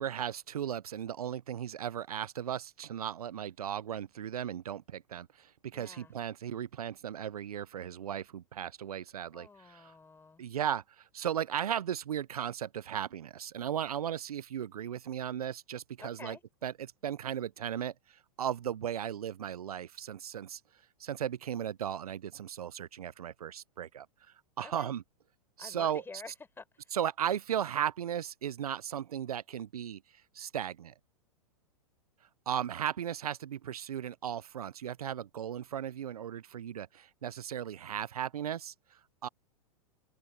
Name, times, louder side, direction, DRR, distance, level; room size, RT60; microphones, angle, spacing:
voice 1, 0.0-9.9 10.4-16.4 16.6-20.6 21.0-24.1 24.6-25.0 25.6-26.0 26.9-30.0 30.3-30.9 32.5-38.7 39.2-39.3, right 9 dB, 90° right, 0.5 m, -36 dB
voice 2, 5.7-6.1 9.3-10.4 16.0-16.4 24.6-24.9 25.6-26.9, left 4 dB, 10° left, 4.9 m, -49 dB
open air
hypercardioid pair, 115°, 19 cm